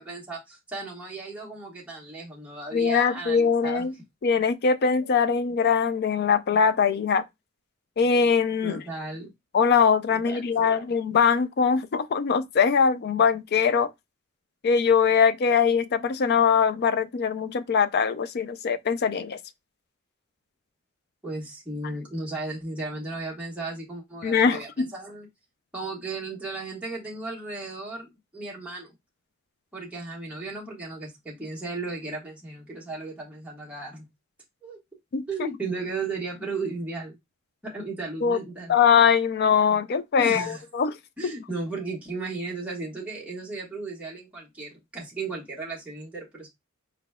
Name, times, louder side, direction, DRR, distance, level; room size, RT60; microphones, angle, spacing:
voice 1, 0.0-3.8 8.6-9.3 10.1-10.8 21.2-25.3 25.7-28.9 29.7-34.1 34.6-34.8 35.3-37.1 37.6-38.7 40.2-40.6 41.2-46.5, right 3 dB, 5° right, 1.4 m, -35 dB
voice 2, 2.7-3.9 4.2-7.3 8.0-8.8 9.5-13.9 14.6-19.4 24.2-24.9 35.1-35.2 38.2-38.4 38.7-41.0 41.2-41.3, left 6 dB, 50° left, 0.4 m, -22 dB
4.5 x 4.0 x 2.2 m
head